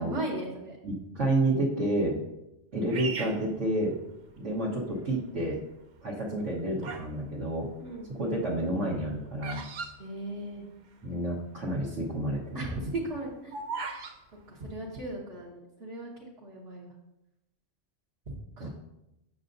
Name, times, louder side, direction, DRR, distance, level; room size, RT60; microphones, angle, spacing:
voice 1, 0.0-0.8 7.8-8.2 10.0-10.6 12.5-13.6 14.5-16.9 18.6-18.7, right 1 dB, 65° right, -5 dB, 1.4 m, -37 dB
voice 2, 0.8-2.2 2.7-4.0 4.4-5.6 6.0-7.7 8.2-9.6 11.0-12.6 18.6-18.7, right 1 dB, 80° right, -7 dB, 1.6 m, -29 dB
Bird vocalization bird call bird song, 2.9-4.4 5.0-5.5 6.2-7.2 7.4-10.9 11.2-11.3 11.5-11.8 12.3-14.2, right 4 dB, 50° right, 0.6 m, -39 dB
8.5 x 6.7 x 2.6 m, 0.90 s
omnidirectional pair, 1.2 m